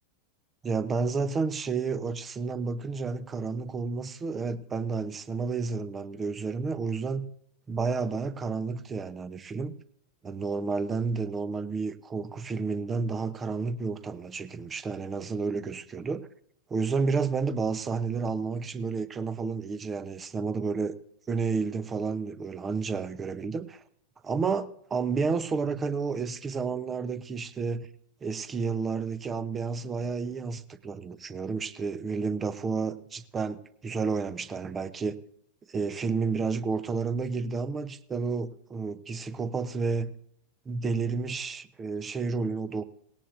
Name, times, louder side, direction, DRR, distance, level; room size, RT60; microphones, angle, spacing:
voice 1, 0.6-7.3 7.7-9.7 10.2-16.3 16.7-21.0 21.3-23.8 24.2-27.9 28.2-35.2 35.7-40.1 40.7-42.9, right 4 dB, 20° right, 0.8 m, -31 dB
18.5 x 18.0 x 2.6 m
figure-of-eight pair, 90°, 0 cm